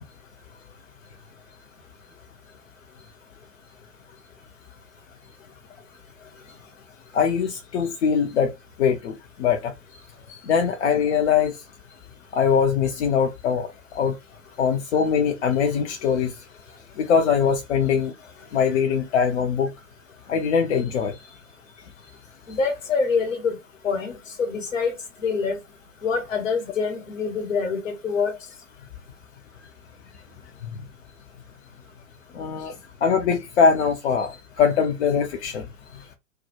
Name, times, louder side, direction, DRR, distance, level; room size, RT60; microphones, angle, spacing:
voice 1, 7.1-8.5 8.8-9.7 10.3-11.6 12.3-13.7 13.9-14.2 14.6-16.3 17.0-18.1 18.5-19.7 20.3-21.2 30.6-30.7 32.3-32.7 33.0-35.7, left 6 dB, 60° left, 0.6 m, -22 dB
voice 2, 22.5-23.6 23.8-24.9 25.2-25.6 26.0-28.4, left 5 dB, 75° left, 1.2 m, -25 dB
2.3 x 2.2 x 2.8 m
figure-of-eight pair, 110°, 38 cm